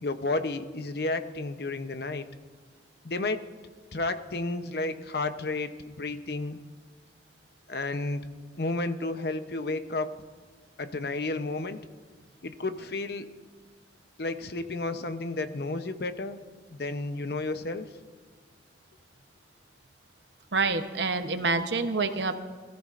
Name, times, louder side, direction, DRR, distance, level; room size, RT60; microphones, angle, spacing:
voice 1, 0.0-2.3 3.0-3.5 3.9-6.6 7.7-8.2 8.6-10.2 10.8-11.8 12.4-13.3 14.2-17.9, left 2 dB, 55° left, 10 dB, 0.7 m, -32 dB
voice 2, 20.5-22.4, right 3 dB, 70° right, 8 dB, 0.9 m, -27 dB
21.5 x 14.0 x 2.5 m, 1.5 s
head